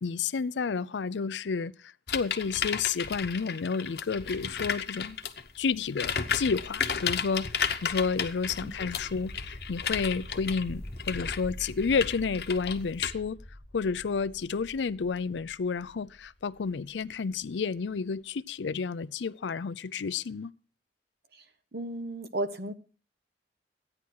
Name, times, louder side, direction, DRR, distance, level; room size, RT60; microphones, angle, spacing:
voice 1, 0.0-5.2 5.6-13.4 13.7-20.5, left 5 dB, 90° left, 0.5 m, -31 dB
sound 1, 2.1-5.5 5.9-13.1, left 7 dB, 65° left, 1.0 m, -33 dB
sound 2, 4.5-17.3, left 1 dB, 10° left, 1.3 m, -46 dB
voice 2, 21.7-22.7, right 1 dB, 60° right, 1.1 m, -34 dB
13.5 x 9.8 x 4.6 m
head